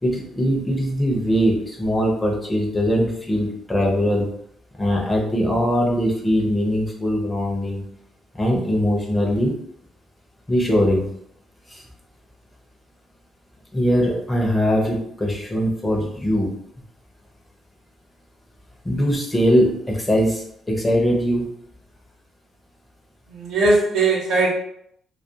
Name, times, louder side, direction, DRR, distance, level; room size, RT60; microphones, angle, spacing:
voice 1, 0.0-4.3 4.8-7.8 8.3-9.5 10.5-11.1 11.7-11.8 13.7-16.6 18.8-21.5, equal, 15° left, -2 dB, 0.6 m, -21 dB
voice 2, 23.3-24.5, right 2 dB, 80° right, -3 dB, 0.8 m, -19 dB
2.3 x 2.2 x 2.7 m, 0.71 s
cardioid pair, 115°, 0 cm